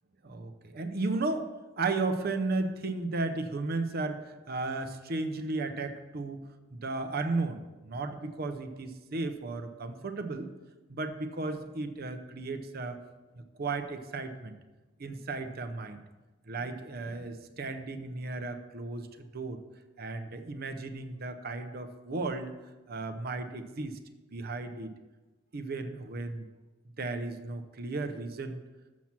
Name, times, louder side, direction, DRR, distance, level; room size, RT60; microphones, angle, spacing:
voice 1, 0.2-1.5 1.8-6.4 6.7-10.5 10.9-13.0 13.5-14.5 15.0-16.0 16.5-19.1 19.3-19.6 20.0-22.5 22.9-23.9 24.3-24.9 25.5-26.4 27.0-28.6, right 3 dB, 50° right, 8 dB, 0.7 m, -34 dB
7.3 x 5.9 x 5.9 m, 1.1 s
head